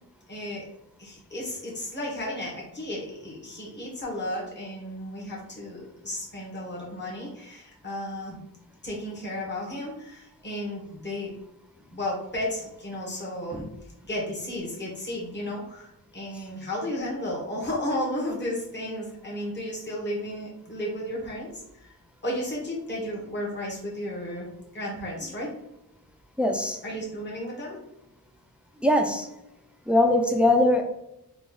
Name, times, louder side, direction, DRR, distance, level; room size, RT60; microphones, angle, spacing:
voice 1, 0.3-0.6 1.0-8.4 8.8-11.3 11.9-13.7 14.1-21.6 22.2-24.5 24.7-25.5 26.8-27.8, left 1 dB, 30° left, -4 dB, 1.1 m, -33 dB
voice 2, 26.4-26.8 28.8-29.3 29.9-30.8, left 1 dB, 5° right, 4 dB, 0.5 m, -21 dB
3.0 x 2.4 x 3.9 m, 0.87 s
wide cardioid pair, 50°, 37 cm